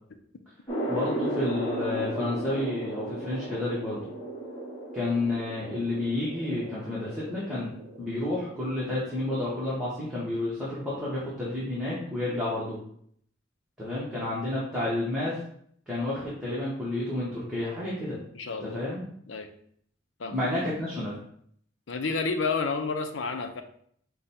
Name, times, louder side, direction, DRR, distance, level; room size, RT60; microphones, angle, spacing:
sound 1, 0.7-9.9, right 1 dB, 25° left, 1.4 m, -36 dB
voice 1, 0.8-4.0 4.9-7.7 8.0-12.8 13.8-15.4 15.9-18.2 18.6-19.0 20.3-21.2, left 2 dB, 5° right, -9 dB, 1.1 m, -30 dB
voice 2, 18.3-18.8 19.3-19.5 20.2-20.4 21.9-23.6, left 4 dB, 70° left, 6 dB, 0.6 m, -30 dB
5.0 x 2.3 x 4.3 m, 0.64 s
head